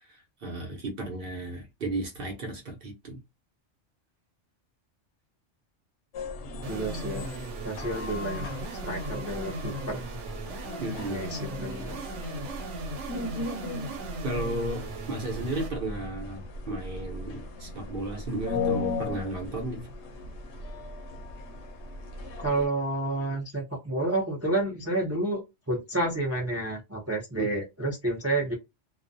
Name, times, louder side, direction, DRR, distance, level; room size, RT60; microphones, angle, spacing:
voice 1, 0.4-3.2 10.8-11.3 14.2-19.9 27.4-27.6, right 2 dB, 55° right, 0.8 m, -34 dB
sound 1, 6.1-22.7, left 3 dB, 75° left, 0.8 m, -37 dB
voice 2, 6.6-7.3 7.6-8.5 8.8-10.0 11.1-12.0 22.4-28.5, right 2 dB, 25° right, 0.3 m, -30 dB
sound 2, 6.6-15.7, right 2 dB, 85° right, 1.0 m, -38 dB
2.3 x 2.1 x 2.5 m
omnidirectional pair, 1.2 m